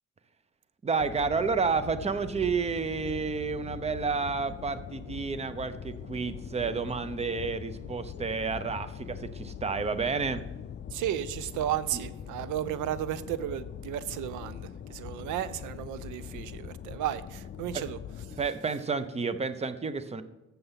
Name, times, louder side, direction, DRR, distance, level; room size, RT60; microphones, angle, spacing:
voice 1, 0.8-10.5 17.7-17.8 18.4-20.2, right 5 dB, 20° right, 12 dB, 0.7 m, -30 dB
sound 1, 1.0-18.5, left 9 dB, 40° left, 0.4 m, -42 dB
voice 2, 10.9-18.0 18.3-18.4, right 11 dB, 85° right, 16 dB, 0.5 m, -34 dB
7.8 x 7.0 x 5.7 m, 1.0 s
cardioid pair, 90°, 30 cm